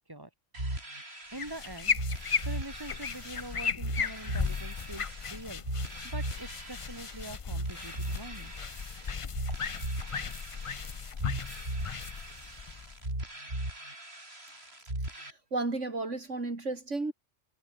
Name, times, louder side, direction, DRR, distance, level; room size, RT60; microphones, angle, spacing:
sound 1, 0.5-15.3, right 1 dB, 55° right, 6.7 m, -38 dB
sound 2, 1.3-13.3, left 6 dB, 35° left, 0.6 m, -36 dB
voice 1, 1.3-5.6 6.0-8.5, right 1 dB, 20° right, 4.2 m, -44 dB
voice 2, 15.1-17.1, right 3 dB, 75° right, 3.9 m, -33 dB
omnidirectional pair, 1.2 m